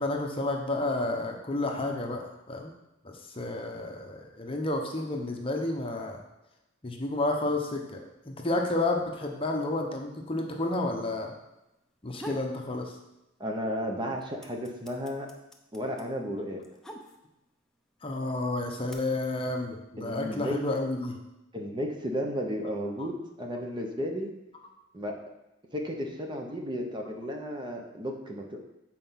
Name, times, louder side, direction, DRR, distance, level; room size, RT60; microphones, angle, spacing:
voice 1, 0.0-2.7 3.0-6.2 6.8-11.3 12.0-12.9 18.0-21.1, left 2 dB, 30° left, 2 dB, 0.8 m, -31 dB
sound 1, 11.9-12.6 13.0-13.7 13.9-17.5 18.3-18.9, equal, 5° left, 0.6 m, -45 dB
voice 2, 13.4-15.3 15.7-16.6 20.0-20.7 21.5-24.3 24.9-25.2 25.7-28.6, equal, 25° right, 2 dB, 0.9 m, -33 dB
7.5 x 4.6 x 5.7 m, 0.94 s
head